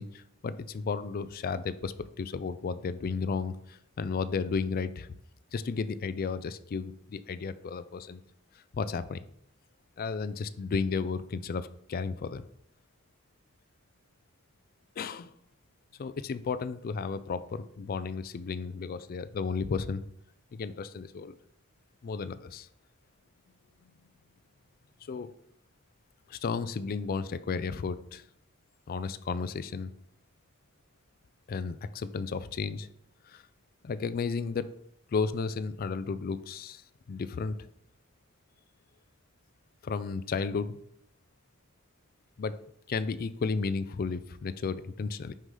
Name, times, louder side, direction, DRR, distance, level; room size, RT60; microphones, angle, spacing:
voice 1, 0.0-5.1 5.5-8.2 8.7-9.2 10.0-12.5 15.0-15.3 16.0-20.0 20.5-21.3 22.0-22.7 25.0-25.3 26.3-28.2 28.9-29.9 31.5-32.9 33.2-33.4 33.8-34.8 35.1-36.8 37.1-37.7 39.8-40.8 42.4-42.6 42.9-45.3, left 5 dB, 45° left, 14 dB, 0.3 m, -33 dB
6.1 x 5.6 x 3.8 m, 0.72 s
head